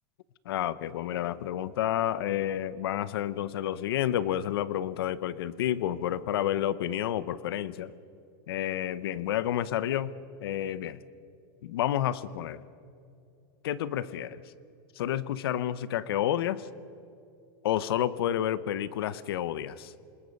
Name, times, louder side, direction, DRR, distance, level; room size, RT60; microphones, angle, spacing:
voice 1, 0.4-7.9 8.5-10.2 10.4-11.0 11.6-12.6 13.6-14.4 15.0-16.7 17.6-19.9, left 11 dB, 85° left, 17 dB, 0.8 m, -30 dB
27.0 x 21.0 x 5.4 m, 2.6 s
supercardioid pair, 165°, 12 cm